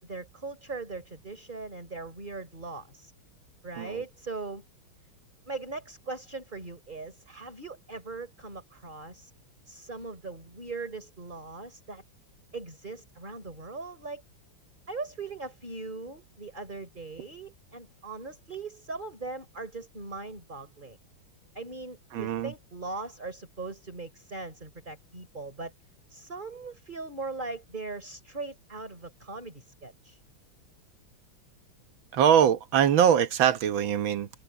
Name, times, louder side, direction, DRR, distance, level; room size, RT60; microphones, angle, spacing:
voice 1, 0.0-3.1 3.6-4.6 5.5-9.3 9.7-12.0 12.5-14.2 14.9-21.0 21.5-25.7 26.1-30.2, right 3 dB, 20° right, 3.8 m, -40 dB
voice 2, 22.1-22.5 32.1-34.3, right 9 dB, 75° right, 1.8 m, -23 dB
open air
omnidirectional pair, 2.2 m